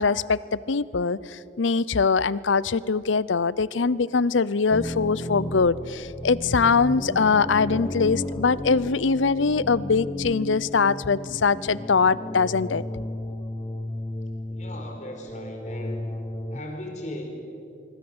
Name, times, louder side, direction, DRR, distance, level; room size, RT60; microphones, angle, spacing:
voice 1, 0.0-12.8, left 4 dB, 90° left, 20 dB, 0.7 m, -22 dB
sound 1, 4.7-16.6, left 1 dB, 20° left, 1.1 m, -34 dB
voice 2, 14.5-16.1 16.5-17.3, left 1 dB, 40° left, 2 dB, 4.5 m, -37 dB
25.0 x 24.5 x 8.0 m, 2.7 s
head